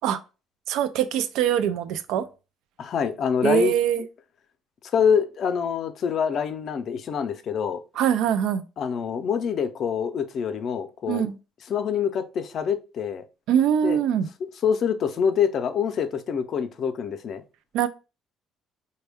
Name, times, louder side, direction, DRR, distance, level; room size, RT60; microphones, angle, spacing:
voice 1, 0.7-2.3 3.4-4.0 8.0-8.6 11.1-11.4 13.5-14.3 17.7-17.9, right 9 dB, 80° right, 0.4 m, -23 dB
voice 2, 2.8-3.7 4.9-7.8 8.8-11.3 11.7-13.2 13.8-14.0 14.6-17.4, left 7 dB, 50° left, 0.5 m, -25 dB
4.2 x 2.2 x 3.4 m
cardioid pair, 115°, 0 cm